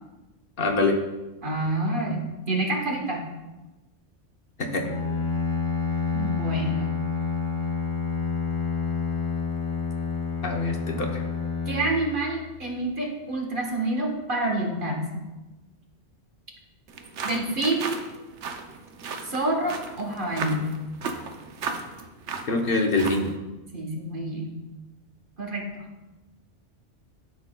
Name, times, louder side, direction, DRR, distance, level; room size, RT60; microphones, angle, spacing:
voice 1, 0.6-1.0 4.6-4.8 10.4-11.2 22.5-23.3, left 2 dB, 55° left, 2 dB, 1.0 m, -24 dB
voice 2, 1.4-3.2 6.1-6.9 11.7-15.2 17.2-18.0 19.2-20.7 23.7-24.5 25.4-25.8, right 2 dB, 45° right, 0 dB, 1.5 m, -28 dB
Bowed string instrument, 4.8-12.8, left 5 dB, 30° left, 0.8 m, -29 dB
sound 1, 16.9-23.4, right 5 dB, 80° right, 1.0 m, -36 dB
12.5 x 6.2 x 2.2 m, 1.1 s
omnidirectional pair, 1.2 m